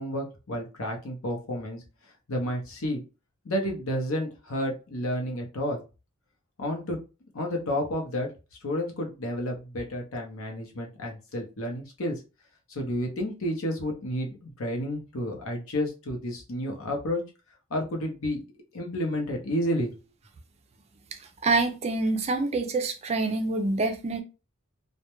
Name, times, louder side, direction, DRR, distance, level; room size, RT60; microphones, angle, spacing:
voice 1, 0.0-1.8 2.3-3.0 3.4-5.8 6.6-7.0 7.3-8.3 8.6-12.2 12.7-17.2 17.7-18.4 18.7-19.9, equal, 65° left, 0.7 m, -31 dB
voice 2, 21.4-24.2, right 3 dB, 30° right, 0.3 m, -26 dB
2.2 x 2.1 x 2.9 m
head